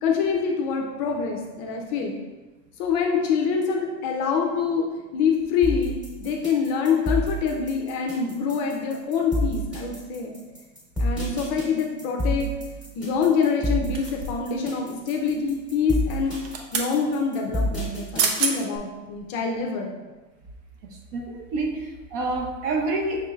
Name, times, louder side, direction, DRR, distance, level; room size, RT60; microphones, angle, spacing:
voice 1, 0.0-2.2 2.8-4.9 5.1-10.4 11.0-12.5 13.0-16.4 16.7-19.9, left 6 dB, 40° left, 1 dB, 0.4 m, -25 dB
sound 1, 5.6-18.8, equal, 5° right, 1.0 m, -29 dB
sound 2, 13.9-14.5 16.2-16.9 17.9-18.0 18.2-18.6 19.1-19.2, right 5 dB, 90° right, 0.7 m, -27 dB
voice 2, 20.8-23.3, right 2 dB, 55° right, 2 dB, 0.6 m, -28 dB
5.7 x 3.1 x 2.3 m, 1.2 s
supercardioid pair, 160°, 36 cm